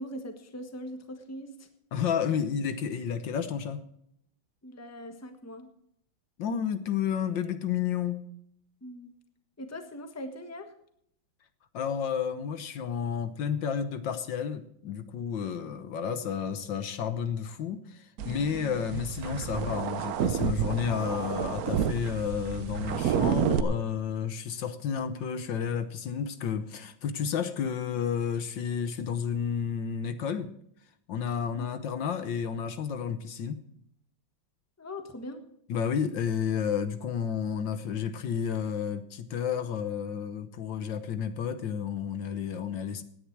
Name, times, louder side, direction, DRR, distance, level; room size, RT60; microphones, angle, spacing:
voice 1, 0.0-1.7 4.6-5.7 8.8-9.1 9.6-10.7 34.8-35.4, left 1 dB, 10° left, 1.1 m, -41 dB
voice 2, 1.9-3.8 6.4-8.3 11.7-30.5 31.1-33.6 35.7-43.0, left 7 dB, 70° left, 1.6 m, -31 dB
sound 1, 18.2-23.6, right 9 dB, 60° right, 1.0 m, -30 dB
17.0 x 10.0 x 4.7 m
omnidirectional pair, 2.2 m